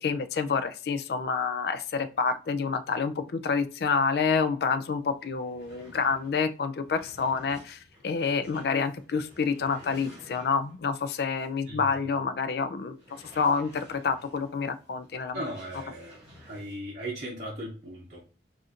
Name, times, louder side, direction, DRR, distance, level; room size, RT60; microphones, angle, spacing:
voice 1, 0.0-13.0 13.4-15.4, left 5 dB, 60° left, 10 dB, 0.3 m, -28 dB
sound 1, 4.8-4.9 5.2-10.9 11.4-11.5 11.9-12.0 12.9-16.8, equal, 5° right, 1.6 m, -53 dB
voice 2, 11.7-12.0 15.3-16.2 16.5-18.2, right 1 dB, 40° right, -5 dB, 0.7 m, -37 dB
4.2 x 2.5 x 2.4 m, 0.36 s
head